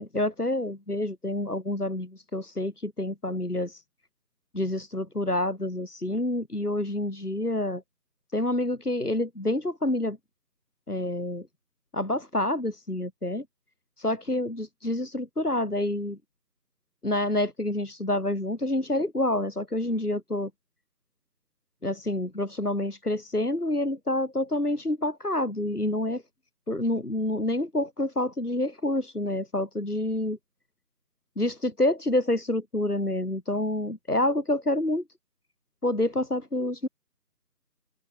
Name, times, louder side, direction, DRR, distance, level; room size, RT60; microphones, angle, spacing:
voice 1, 0.0-3.8 4.5-7.8 8.3-10.2 10.9-11.5 11.9-13.5 14.0-16.2 17.0-20.5 21.8-26.2 26.7-30.4 31.4-35.0 35.8-36.9, left 1 dB, 65° left, 3.8 m, -28 dB
open air
figure-of-eight pair, 175°, 50 cm